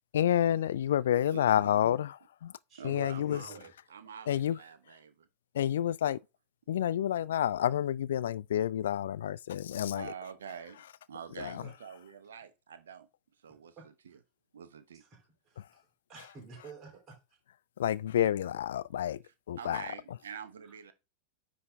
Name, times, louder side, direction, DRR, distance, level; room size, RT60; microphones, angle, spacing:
voice 1, 0.1-2.1 2.4-2.5 2.8-3.4 4.3-4.6 5.6-6.2 6.7-10.1 17.8-19.2 19.5-19.8, left 10 dB, 60° left, 0.3 m, -29 dB
voice 2, 1.3-1.8 2.8-5.3 6.1-6.2 9.9-13.1 13.4-13.8 14.1-14.2 14.5-15.0 19.2-20.9, right 7 dB, 65° right, 0.8 m, -46 dB
voice 3, 2.7-3.7 11.6-11.7 13.8-14.2 14.9-15.8 16.1-17.2 20.6-20.8, right 5 dB, 25° right, 3.5 m, -51 dB
9.6 x 4.0 x 3.5 m
figure-of-eight pair, 90°, 0 cm